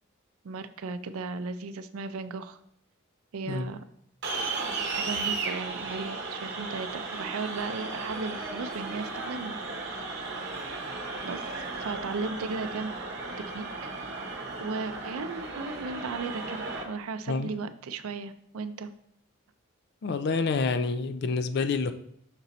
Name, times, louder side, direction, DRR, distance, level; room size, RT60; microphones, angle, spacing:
voice 1, 0.4-2.6 3.3-3.8 4.9-9.6 11.2-12.9 13.5-13.9 14.6-18.9, right 4 dB, 85° right, 0.4 m, -36 dB
sound 1, 4.2-16.8, right 3 dB, 50° right, 0.9 m, -35 dB
voice 2, 20.0-21.9, left 4 dB, 50° left, 0.3 m, -28 dB
6.0 x 4.1 x 4.0 m
head